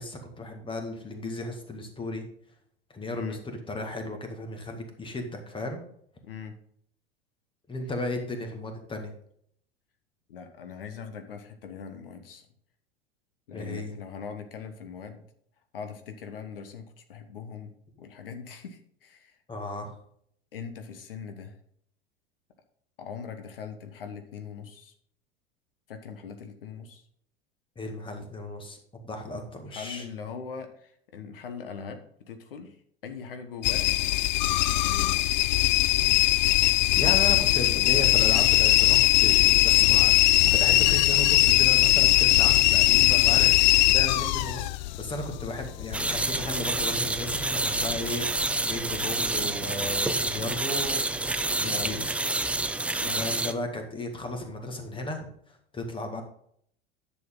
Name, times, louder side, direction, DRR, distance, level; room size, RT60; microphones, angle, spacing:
voice 1, 0.0-2.3 2.9-5.8 7.7-9.1 13.5-13.9 19.5-19.9 27.8-30.1 37.0-43.5 43.9-51.0 51.5-52.1 53.1-56.2, left 1 dB, 15° left, 5 dB, 2.0 m, -35 dB
voice 2, 6.2-6.6 10.3-12.4 13.5-15.2 15.7-17.7 18.0-19.4 20.5-21.6 23.0-24.9 25.9-27.0 29.7-32.8 33.0-33.9 34.3-35.4 42.9-43.6 43.9-44.0 51.6-52.0 53.0-53.3, left 6 dB, 65° left, 7 dB, 1.3 m, -41 dB
sound 1, 33.6-48.5 48.8-49.4 49.9-50.4 50.9-51.0, left 16 dB, 50° left, 0.4 m, -21 dB
sound 2, 45.9-53.5, right 2 dB, 5° right, 0.4 m, -28 dB
10.5 x 6.9 x 3.8 m, 0.66 s
figure-of-eight pair, 80°, 30 cm